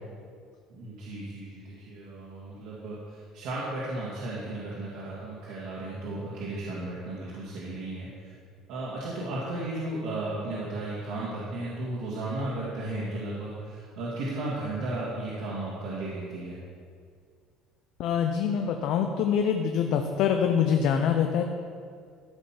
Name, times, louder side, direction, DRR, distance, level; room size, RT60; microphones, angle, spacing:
voice 1, 0.7-8.3 8.7-16.6, right 2 dB, 70° right, -7 dB, 2.2 m, -34 dB
voice 2, 18.0-21.4, left 7 dB, 55° left, 5 dB, 0.7 m, -25 dB
13.5 x 5.4 x 5.9 m, 2.1 s
cardioid pair, 170°, 0 cm